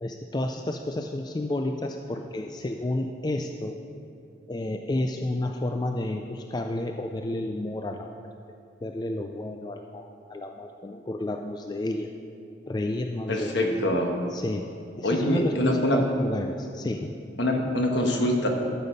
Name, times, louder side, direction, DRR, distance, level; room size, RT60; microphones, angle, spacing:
voice 1, 0.0-3.8 4.5-8.2 8.8-12.1 12.7-13.8 14.3-14.7 14.9-17.2, left 1 dB, 20° left, 4 dB, 0.3 m, -31 dB
voice 2, 13.3-14.2 15.0-16.0 17.4-18.5, left 1 dB, 65° left, 2 dB, 1.4 m, -24 dB
13.0 x 7.0 x 5.2 m, 2.6 s
head